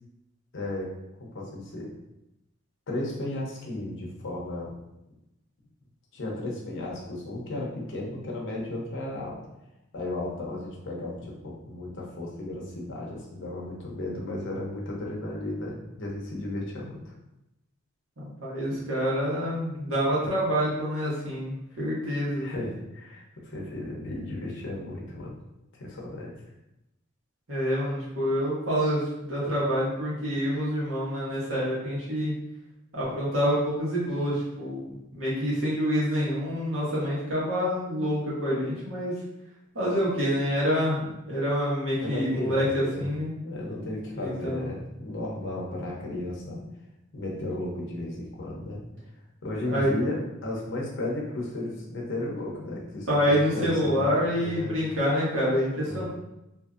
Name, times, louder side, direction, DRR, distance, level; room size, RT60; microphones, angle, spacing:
voice 1, 0.5-1.9 2.9-4.8 6.1-9.4 9.9-17.1 22.4-25.4 25.7-26.3 42.0-43.1 43.4-46.6 47.1-48.8 49.4-54.7 55.9-56.0, left 1 dB, 65° left, -2 dB, 0.7 m, -34 dB
voice 2, 18.2-22.5 27.5-32.3 32.9-34.9 35.1-39.1 39.7-43.3 44.1-44.6 49.7-49.9 53.1-56.0, equal, 70° right, -7 dB, 1.3 m, -27 dB
2.8 x 2.6 x 2.4 m, 0.90 s
head